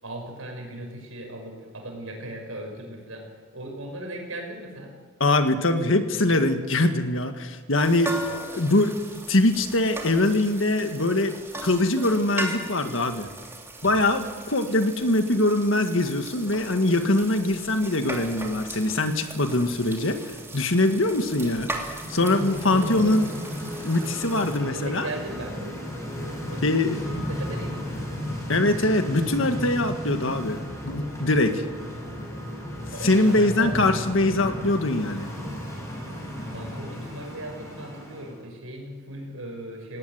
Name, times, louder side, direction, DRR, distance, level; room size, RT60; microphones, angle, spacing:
voice 1, 0.0-5.0 7.9-8.0 8.3-8.6 22.7-23.3 24.6-25.8 26.3-28.2 32.9-34.3 36.5-40.0, right 1 dB, 80° right, 3 dB, 6.1 m, -38 dB
voice 2, 5.2-8.2 8.6-9.0 9.3-13.3 13.8-20.2 20.5-21.7 22.1-23.2 23.8-25.1 26.6-27.0 28.5-31.6 33.0-35.3, left 2 dB, 65° left, 7 dB, 1.8 m, -23 dB
Skillet Cooking, 7.7-24.6, right 2 dB, 10° right, 3.1 m, -38 dB
sound 1, 21.8-38.4, equal, 15° left, 6.2 m, -34 dB
18.5 x 18.0 x 9.3 m, 1.5 s
head